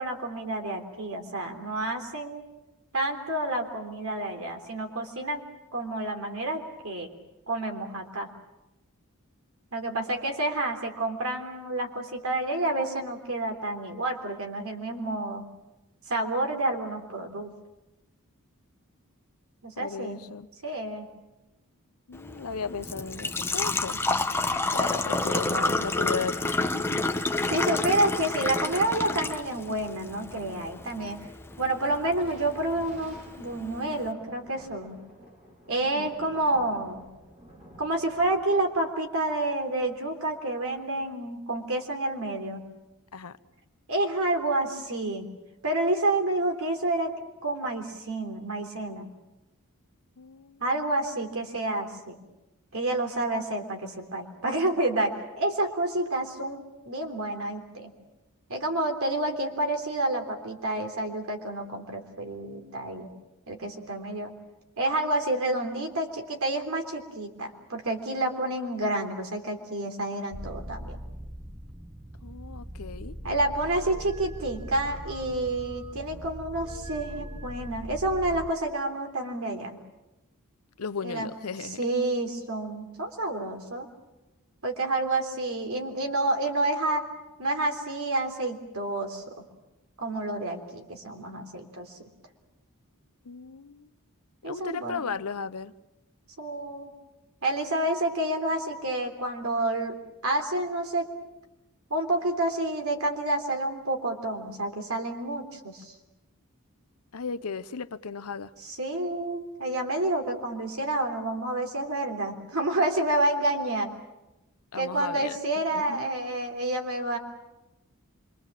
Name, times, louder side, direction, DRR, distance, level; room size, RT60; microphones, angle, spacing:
voice 1, 0.0-2.4 2.9-5.4 5.7-7.1 7.5-8.3 9.7-15.4 16.1-17.5 19.6-20.2 20.6-21.1 27.4-31.2 31.6-35.0 35.7-37.0 37.8-42.6 43.9-45.3 45.6-47.1 47.4-49.1 50.6-52.2 52.7-57.9 58.5-63.1 63.5-64.3 64.8-71.0 73.2-79.8 81.0-81.3 81.6-83.9 84.6-87.1 87.4-89.2 90.0-91.8 94.4-95.0 96.4-96.9 97.4-100.0 100.2-101.1 101.9-105.9 108.6-113.9 114.7-117.2, right 2 dB, 70° right, 4 dB, 3.5 m, -29 dB
voice 2, 19.8-20.5 22.1-24.0 24.7-27.0 36.0-36.1 43.1-43.4 50.2-50.6 72.2-73.2 80.8-81.8 93.2-93.9 94.4-95.7 107.1-108.5 114.7-115.4 115.7-116.1, left 5 dB, 80° left, 14 dB, 0.8 m, -35 dB
Engine / Trickle dribble / Fill (with liquid), 22.1-34.1, left 2 dB, 10° left, 0.9 m, -30 dB
Thunder, 32.1-40.8, equal, 35° right, 4.8 m, -52 dB
sound 1, 70.3-78.5, equal, 15° right, 0.9 m, -40 dB
27.0 x 24.0 x 7.5 m, 0.99 s
head